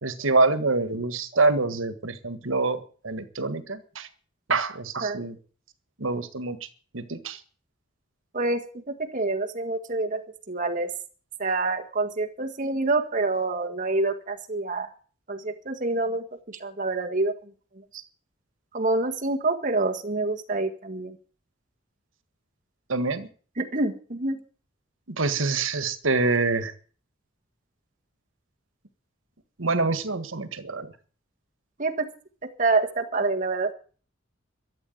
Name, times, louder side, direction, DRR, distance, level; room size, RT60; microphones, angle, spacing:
voice 1, 0.0-4.1 4.5-5.3 6.0-6.7 6.9-7.4 22.9-23.3 25.2-26.7 29.6-30.9, right 3 dB, 85° right, 12 dB, 1.6 m, -26 dB
voice 2, 8.3-10.9 11.4-14.9 15.3-17.5 17.9-18.0 18.7-21.2 23.6-24.4 26.1-26.3 31.8-32.1 32.4-33.7, right 3 dB, 40° right, 4 dB, 1.7 m, -27 dB
13.0 x 8.7 x 9.2 m, 0.42 s
head